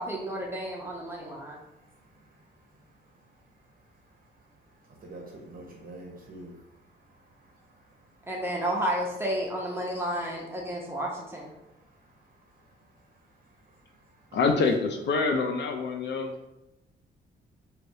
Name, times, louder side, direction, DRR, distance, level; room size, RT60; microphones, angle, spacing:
voice 1, 0.0-1.6 8.3-11.5, right 1 dB, 10° right, -3 dB, 0.6 m, -31 dB
voice 2, 5.5-6.5 14.3-14.5 14.8-15.0, right 2 dB, 45° right, -1 dB, 0.7 m, -44 dB
voice 3, 14.3-16.3, left 4 dB, 60° left, 4 dB, 0.4 m, -26 dB
3.2 x 2.8 x 2.6 m, 0.92 s
cardioid pair, 90°, 20 cm